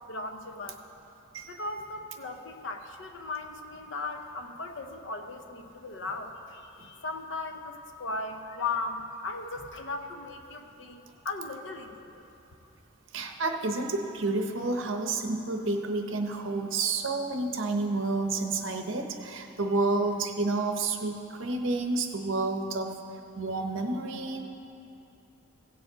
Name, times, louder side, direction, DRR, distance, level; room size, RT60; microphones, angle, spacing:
voice 1, 0.1-0.8 1.4-12.2, left 3 dB, 60° left, 6 dB, 0.7 m, -37 dB
voice 2, 1.3-1.6 13.1-22.9 23.4-24.4, right 3 dB, 70° right, 5 dB, 0.7 m, -30 dB
16.0 x 6.9 x 3.9 m, 2.9 s
head